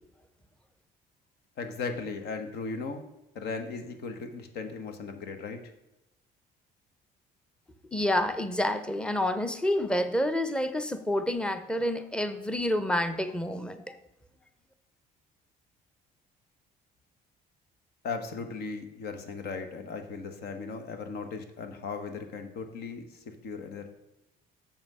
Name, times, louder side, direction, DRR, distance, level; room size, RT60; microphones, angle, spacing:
voice 1, 1.6-3.0 3.3-5.6 18.0-23.9, left 4 dB, 70° left, 7 dB, 1.3 m, -37 dB
voice 2, 7.9-13.9, left 1 dB, 5° left, 10 dB, 0.7 m, -28 dB
7.1 x 5.8 x 5.5 m, 0.95 s
cardioid pair, 110°, 17 cm